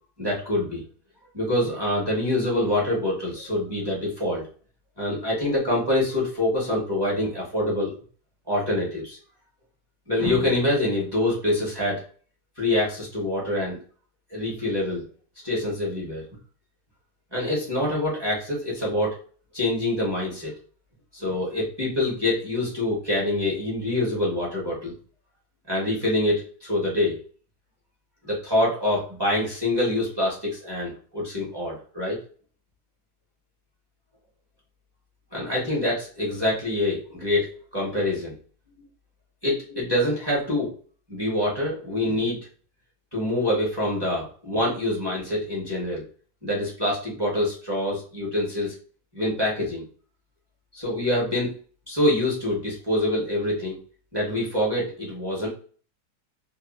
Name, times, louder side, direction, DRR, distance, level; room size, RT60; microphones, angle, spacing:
voice 1, 0.2-0.8 1.3-4.5 5.0-7.9 8.5-9.2 10.1-12.0 12.6-13.8 14.3-15.0 15.4-16.2 17.3-19.2 19.5-20.5 21.1-24.9 25.7-27.2 28.3-32.2 35.3-38.3 39.4-40.7 41.1-42.4 43.1-46.0 46.4-48.7 49.1-49.8 50.7-51.5 51.9-53.8 54.1-55.5, left 1 dB, 20° right, -5 dB, 0.8 m, -25 dB
2.9 x 2.3 x 2.4 m, 0.42 s
omnidirectional pair, 1.8 m